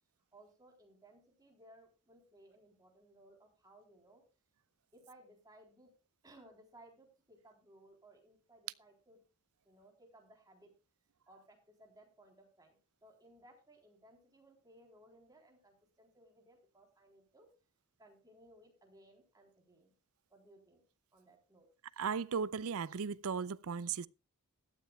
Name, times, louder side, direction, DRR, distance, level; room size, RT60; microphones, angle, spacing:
voice 1, 0.3-4.2 4.9-5.9 6.2-9.2 9.6-10.7 11.3-17.5 18.0-19.9 20.3-20.8 21.1-21.7, right 1 dB, 15° right, 3.6 m, -62 dB
voice 2, 22.0-24.1, right 6 dB, 65° right, 0.5 m, -36 dB
16.5 x 12.5 x 2.3 m
head